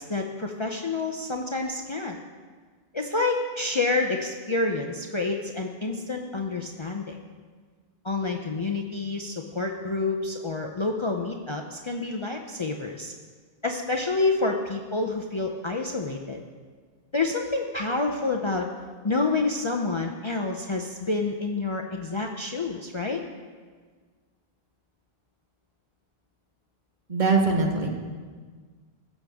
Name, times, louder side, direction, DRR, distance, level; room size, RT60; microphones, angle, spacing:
voice 1, 0.0-2.2 2.9-7.2 8.0-13.1 13.6-16.4 17.1-18.7 19.0-23.2, left 3 dB, 35° left, 2 dB, 0.6 m, -28 dB
voice 2, 27.1-27.9, right 3 dB, 50° right, 2 dB, 1.3 m, -22 dB
16.0 x 7.3 x 3.5 m, 1.5 s
omnidirectional pair, 1.0 m